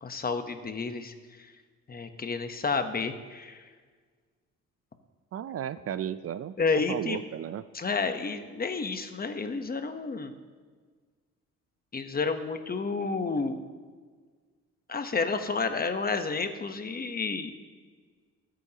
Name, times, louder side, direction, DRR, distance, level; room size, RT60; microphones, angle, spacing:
voice 1, 0.0-1.1 1.9-3.6 6.6-7.2 7.7-10.3 11.9-13.6 14.9-17.5, left 4 dB, 30° left, 8 dB, 1.1 m, -30 dB
voice 2, 5.3-6.6 6.9-7.6, right 10 dB, 50° right, 14 dB, 0.5 m, -34 dB
20.5 x 9.1 x 2.9 m, 1.5 s
cardioid pair, 90°, 30 cm